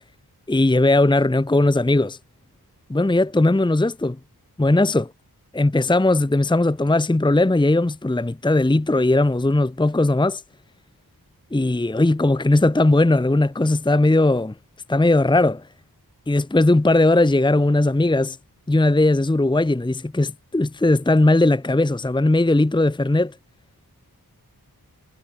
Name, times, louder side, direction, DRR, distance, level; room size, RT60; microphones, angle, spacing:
voice 1, 0.5-2.2 2.9-4.2 4.6-5.1 5.5-10.4 11.5-14.5 14.9-15.6 16.3-18.4 18.7-23.3, left 2 dB, 10° left, 0.9 m, -18 dB
wide cardioid pair, 65°, 38 cm